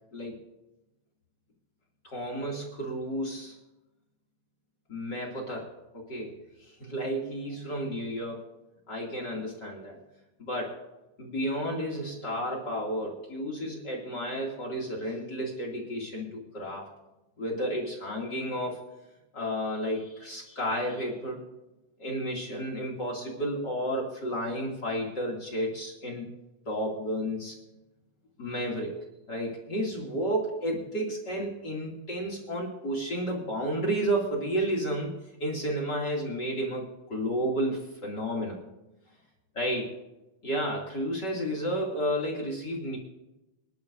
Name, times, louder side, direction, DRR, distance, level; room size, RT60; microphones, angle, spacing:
voice 1, 2.1-3.6 4.9-8.5 8.9-10.0 10.4-10.8 11.2-16.9 17.4-18.8 19.3-21.4 22.0-26.3 26.7-27.5 28.4-29.0 29.3-35.1 35.4-38.6 39.5-39.9 40.4-43.0, equal, 35° left, -1 dB, 1.8 m, -32 dB
27.5 x 12.0 x 2.7 m, 0.98 s
omnidirectional pair, 6.0 m